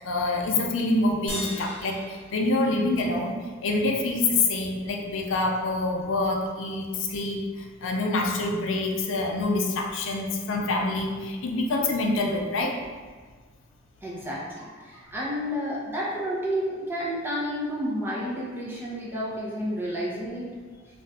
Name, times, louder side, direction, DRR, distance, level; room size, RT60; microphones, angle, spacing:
voice 1, 0.0-12.8, left 2 dB, 70° left, 1 dB, 0.4 m, -26 dB
sound 1, 1.3-3.9, left 1 dB, 10° left, 1.4 m, -39 dB
voice 2, 14.0-20.5, equal, 10° right, -6 dB, 0.7 m, -30 dB
4.4 x 2.4 x 2.5 m, 1.5 s
head